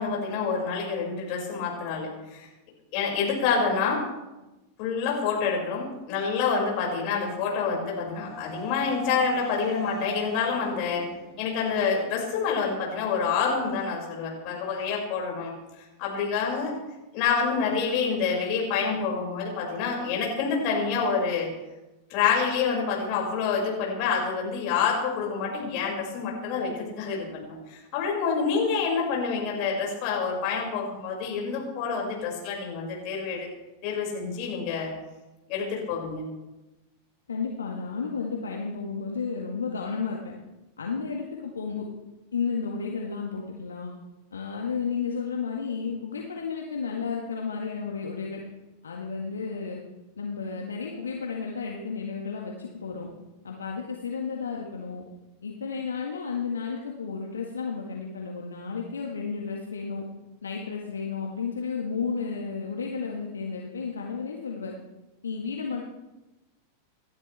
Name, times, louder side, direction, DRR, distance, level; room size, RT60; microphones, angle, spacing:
voice 1, 0.0-2.5 2.9-4.0 4.8-11.0 11.4-16.7 17.1-21.5 22.1-33.5 33.8-34.9 35.5-36.3, left 5 dB, 45° left, -2 dB, 5.8 m, -27 dB
sound 1, 7.6-12.8, right 3 dB, 25° left, 5.1 m, -41 dB
voice 2, 37.3-40.3 40.8-41.8 42.3-43.9 44.3-48.4 48.8-49.8 50.2-53.1 53.4-55.0 55.4-60.0 60.4-64.8 65.2-65.8, left 5 dB, 70° left, 0 dB, 1.7 m, -32 dB
28.5 x 11.5 x 3.4 m, 1.1 s
figure-of-eight pair, 90°, 0 cm